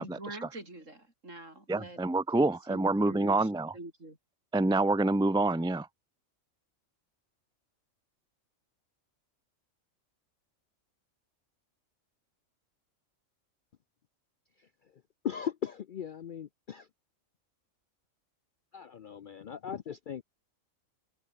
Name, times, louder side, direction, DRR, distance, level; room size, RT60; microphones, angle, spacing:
voice 1, 0.0-2.0 2.3-4.2, right 2 dB, 65° right, 6.6 m, -46 dB
voice 2, 1.7-3.7 4.5-5.9, right 2 dB, 5° right, 0.3 m, -27 dB
voice 3, 15.2-16.9 18.7-20.2, left 8 dB, 55° left, 0.5 m, -38 dB
open air
omnidirectional pair, 1.4 m